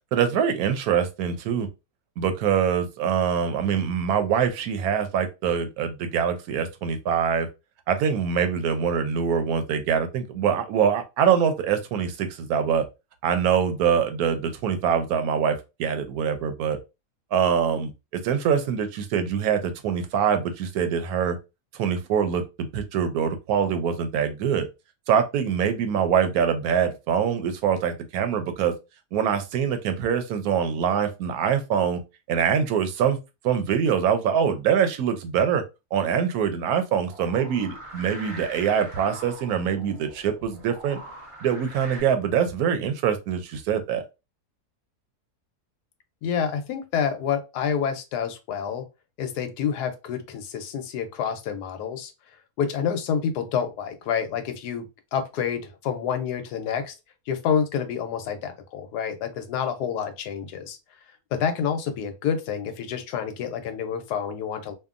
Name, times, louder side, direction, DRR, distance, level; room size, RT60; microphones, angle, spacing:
voice 1, 0.1-1.7 2.2-7.5 7.9-12.8 13.2-16.8 17.3-21.4 21.7-22.4 22.7-24.7 25.1-28.7 29.1-32.0 32.3-33.2 33.4-35.6 35.9-41.0 41.4-44.0, right 7 dB, 75° right, 1.0 m, -24 dB
sound 1, 37.0-42.0, right 1 dB, 35° right, 0.5 m, -42 dB
voice 2, 46.2-48.8 49.2-52.1 52.6-54.9 55.1-56.9 57.3-60.8 61.3-64.7, left 7 dB, 90° left, 1.2 m, -28 dB
2.8 x 2.4 x 2.4 m
omnidirectional pair, 1.7 m